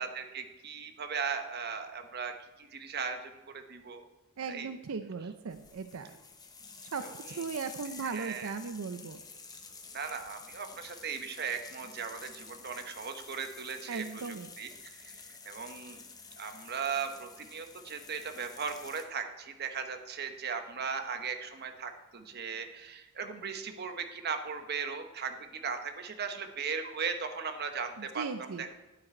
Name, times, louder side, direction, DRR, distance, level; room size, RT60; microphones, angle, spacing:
voice 1, 0.0-4.0 4.5-4.7 7.0-7.4 8.0-8.5 9.9-16.0 16.4-28.7, right 6 dB, 50° right, 6 dB, 1.0 m, -38 dB
voice 2, 4.4-6.2 6.9-9.2 13.9-14.5 28.0-28.7, right 5 dB, 75° right, 9 dB, 0.5 m, -38 dB
sound 1, 5.5-19.0, left 4 dB, 20° left, 0.9 m, -50 dB
12.0 x 9.0 x 4.4 m, 1.1 s
head